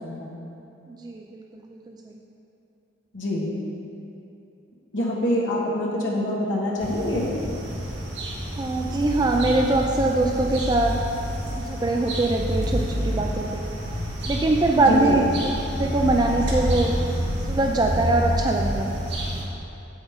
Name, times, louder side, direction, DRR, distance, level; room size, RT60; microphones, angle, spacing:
voice 1, 0.0-0.3 3.1-3.5 4.9-7.3 14.8-15.3, left 1 dB, 70° left, -4 dB, 1.3 m, -25 dB
voice 2, 0.9-1.4 1.7-2.0 8.6-11.0 11.6-13.6 14.3-15.5 15.8-17.0 17.5-18.9, right 2 dB, 20° right, 2 dB, 0.3 m, -22 dB
sound 1, 6.8-19.4, equal, 65° right, 1.7 m, -28 dB
8.1 x 8.0 x 3.6 m, 2.8 s
head